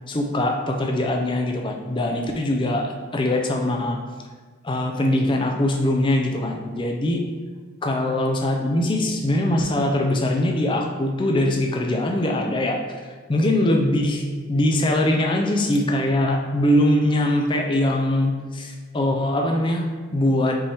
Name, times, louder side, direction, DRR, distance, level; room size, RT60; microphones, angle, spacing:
voice 1, 0.1-4.0 4.6-7.2 7.8-12.8 13.3-20.6, left 1 dB, 25° left, 2 dB, 0.4 m, -22 dB
5.4 x 3.3 x 2.9 m, 1.4 s
head